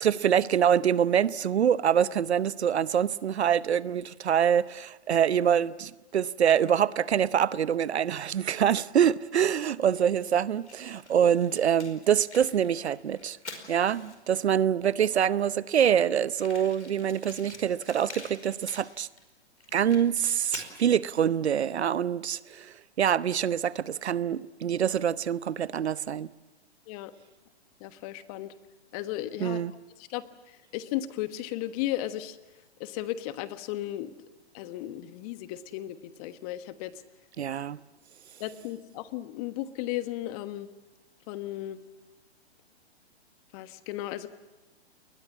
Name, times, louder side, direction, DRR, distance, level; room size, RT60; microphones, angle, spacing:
voice 1, 0.0-13.4 13.7-19.1 19.7-26.3 29.4-29.7 37.4-37.8, right 9 dB, 75° right, 0.8 m, -25 dB
Fire, 10.6-14.4 15.1-15.2 15.4-15.5 15.7-15.8 16.3-19.2 19.6-20.8, left 3 dB, 90° left, 5.1 m, -46 dB
voice 2, 27.8-28.5 28.9-29.6 30.0-32.4 32.8-34.1 34.5-36.9 38.4-40.7 41.3-41.8 43.5-44.3, left 14 dB, 35° left, 1.3 m, -35 dB
29.0 x 21.0 x 7.4 m
hypercardioid pair, 130°, 33 cm